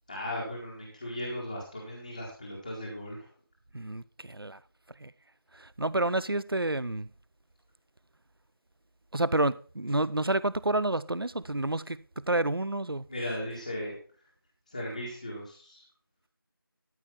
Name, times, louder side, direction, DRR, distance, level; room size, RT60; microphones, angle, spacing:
voice 1, 0.1-3.3 13.1-14.0 14.7-15.9, left 1 dB, 20° left, 1.8 m, -37 dB
voice 2, 3.7-4.6 5.0-5.1 5.5-7.1 9.1-13.0, right 2 dB, 80° right, 0.7 m, -29 dB
13.0 x 5.3 x 5.7 m
figure-of-eight pair, 170°, 12 cm